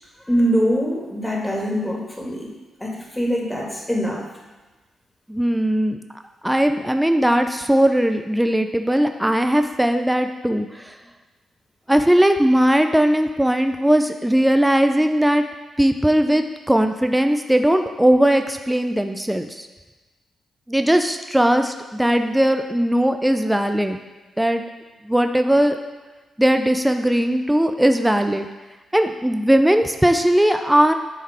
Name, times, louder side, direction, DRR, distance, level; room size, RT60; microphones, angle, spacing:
voice 1, 0.2-2.5 2.8-4.2, equal, 10° left, -2 dB, 2.1 m, -23 dB
voice 2, 5.3-6.0 6.4-10.9 11.9-15.4 15.8-19.7 20.7-24.0 24.4-24.6 25.1-25.8 26.4-28.5 28.9-30.9, right 1 dB, 5° right, 7 dB, 0.5 m, -19 dB
9.3 x 3.8 x 4.4 m, 1.2 s
hypercardioid pair, 45°, 0 cm